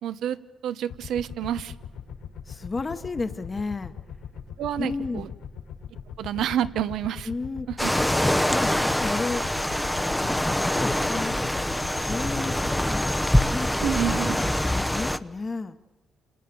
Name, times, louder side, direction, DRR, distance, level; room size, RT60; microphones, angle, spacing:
voice 1, 0.0-0.4 0.6-1.7 4.6-5.3 6.2-7.3 7.7-7.9 13.8-14.4, right 10 dB, 75° right, 12 dB, 1.0 m, -28 dB
sound 1, 0.9-12.8, left 7 dB, 90° left, 6.1 m, -40 dB
voice 2, 2.5-3.9 4.8-5.3 7.3-7.7 8.5-9.4 10.3-11.7 12.0-13.2 13.5-13.7 14.1-15.8, left 3 dB, 30° left, 9 dB, 1.2 m, -33 dB
sound 2, 7.8-15.2, left 1 dB, 5° left, 0.8 m, -24 dB
28.5 x 27.0 x 7.0 m, 1.1 s
cardioid pair, 90°, 0 cm